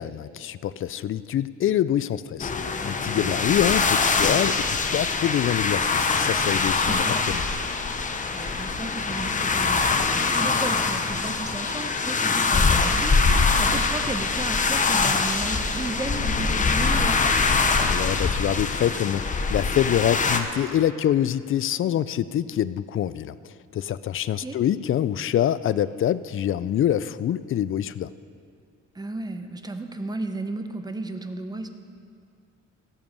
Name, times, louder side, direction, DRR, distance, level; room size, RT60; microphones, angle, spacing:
voice 1, 0.0-7.5 17.8-23.3 23.7-28.1, left 11 dB, 45° left, 15 dB, 0.4 m, -25 dB
sound 1, 2.4-20.4, left 4 dB, 25° left, 0.8 m, -23 dB
voice 2, 3.1-3.5 6.9-7.2 8.3-17.5 24.4-24.6 28.9-31.7, right 2 dB, 15° right, 7 dB, 0.8 m, -34 dB
16.0 x 7.0 x 5.3 m, 2.2 s
cardioid pair, 105°, 30 cm